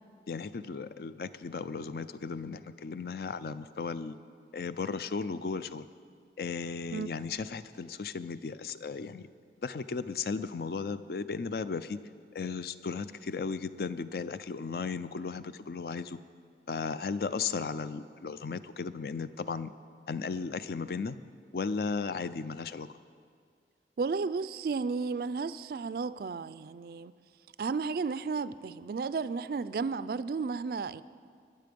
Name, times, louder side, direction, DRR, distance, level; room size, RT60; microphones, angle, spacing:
voice 1, 0.3-4.2 4.5-5.9 6.4-9.3 9.6-12.0 12.3-16.2 16.7-19.7 20.1-21.2 21.5-22.9, left 4 dB, 55° left, 0.4 m, -35 dB
voice 2, 24.0-27.1 27.6-31.0, right 4 dB, 55° right, 0.3 m, -33 dB
21.0 x 7.6 x 5.2 m
head